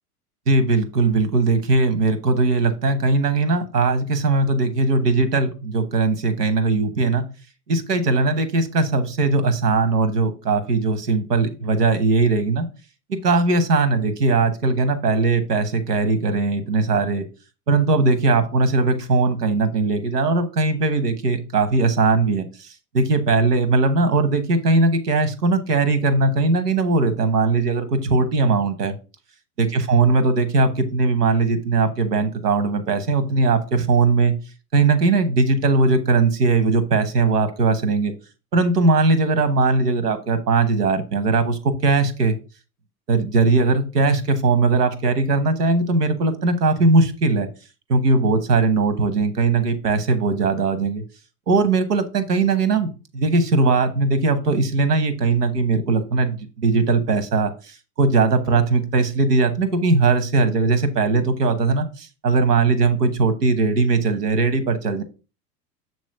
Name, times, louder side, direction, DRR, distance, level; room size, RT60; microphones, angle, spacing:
voice 1, 0.5-7.2 7.7-12.7 13.2-17.3 17.7-22.7 22.9-28.9 29.6-34.3 34.7-38.1 38.5-42.3 43.1-47.5 47.9-51.0 51.5-65.0, right 3 dB, 75° right, 10 dB, 1.3 m, -19 dB
7.3 x 3.1 x 5.7 m, 0.33 s
figure-of-eight pair, 85°, 47 cm